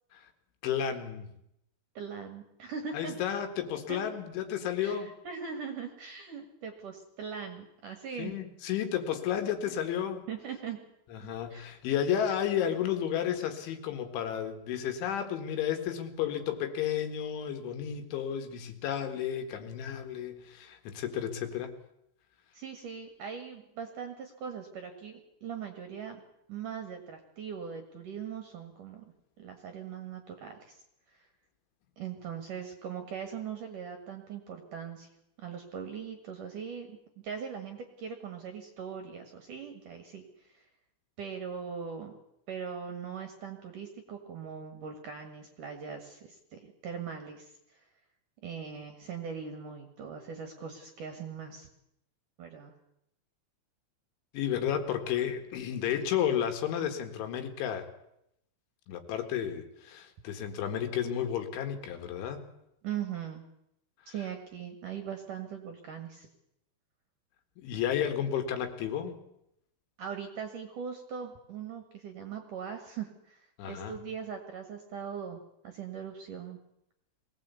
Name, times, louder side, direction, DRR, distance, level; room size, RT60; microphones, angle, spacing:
voice 1, 0.6-1.3 2.9-5.1 8.2-10.3 11.1-21.7 54.3-57.9 58.9-62.4 64.0-64.1 67.6-69.2 73.6-74.0, left 9 dB, 75° left, 7 dB, 4.0 m, -32 dB
voice 2, 1.9-3.2 3.9-4.0 4.8-8.3 10.3-10.8 11.2-11.8 22.5-26.2 26.5-29.1 29.4-30.8 31.1-31.3 32.0-35.1 35.4-40.7 41.2-42.2 42.5-47.8 48.4-51.7 52.4-52.7 62.8-63.4 64.1-66.3 70.0-76.6, right 7 dB, 60° right, 6 dB, 2.3 m, -40 dB
22.0 x 17.5 x 8.3 m, 0.79 s
omnidirectional pair, 5.7 m